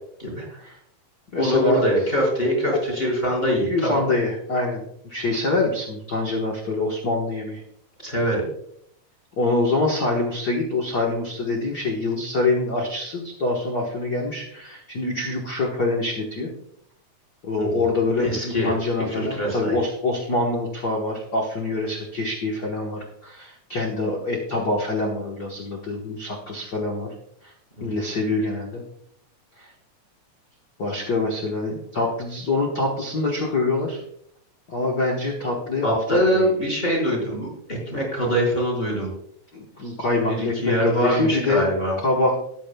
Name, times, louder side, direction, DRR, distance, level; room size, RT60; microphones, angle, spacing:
voice 1, 0.2-0.6 1.4-4.0 8.0-8.4 17.6-17.8 18.2-18.7 19.1-19.8 27.8-28.1 35.8-39.1 40.3-42.0, equal, 15° left, -1 dB, 4.5 m, -24 dB
voice 2, 1.3-1.8 3.7-7.6 9.4-16.5 17.4-27.1 27.4-27.5 27.8-28.8 29.6-29.7 30.8-34.0 34.7-36.0 36.3-36.7 39.5-41.7 42.0-42.4, left 2 dB, 50° left, -1 dB, 1.3 m, -25 dB
14.0 x 10.0 x 2.3 m, 0.70 s
omnidirectional pair, 3.6 m